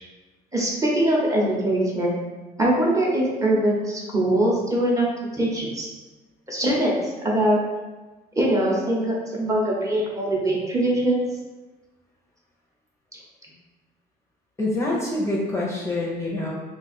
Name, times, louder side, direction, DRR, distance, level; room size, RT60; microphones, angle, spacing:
voice 1, 0.5-2.1 2.6-5.1 5.3-5.9 6.5-7.6 8.4-11.2, right 1 dB, 20° right, -4 dB, 0.8 m, -22 dB
voice 2, 14.6-16.5, left 2 dB, 15° left, -4 dB, 0.5 m, -26 dB
2.5 x 2.3 x 4.1 m, 1.2 s
cardioid pair, 110°, 17 cm